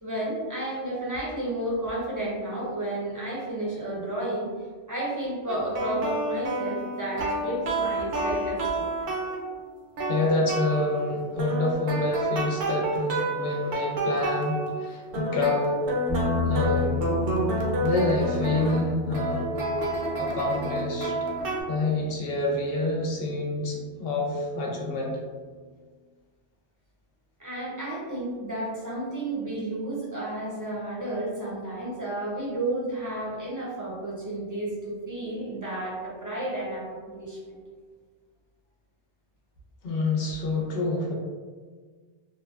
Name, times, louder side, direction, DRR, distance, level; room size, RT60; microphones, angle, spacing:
voice 1, 0.0-4.5 4.9-8.9 27.4-37.6, right 1 dB, 20° right, -7 dB, 0.6 m, -32 dB
sound 1, 5.5-9.5 10.0-11.1 11.4-14.9 15.1-21.6, right 2 dB, 60° right, 0.7 m, -29 dB
voice 2, 10.1-15.8 16.5-17.1 17.8-19.5 20.2-21.2 21.7-25.2 39.8-41.1, left 2 dB, 65° left, -1 dB, 0.7 m, -27 dB
sound 2, 16.1-24.4, left 6 dB, 25° left, 0.5 m, -33 dB
3.1 x 2.1 x 2.4 m, 1.5 s
omnidirectional pair, 1.2 m